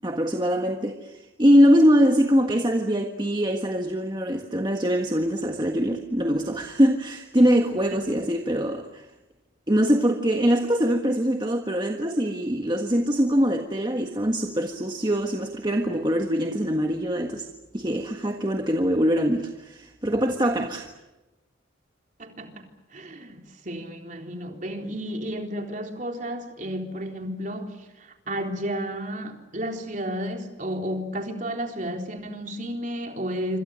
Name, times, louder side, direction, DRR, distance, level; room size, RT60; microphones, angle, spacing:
voice 1, 0.0-9.0 9.7-17.5 17.7-20.9, equal, 20° right, 4 dB, 1.6 m, -23 dB
voice 2, 22.2-33.6, equal, 40° right, 3 dB, 3.8 m, -32 dB
27.5 x 26.0 x 6.5 m, 1.1 s
head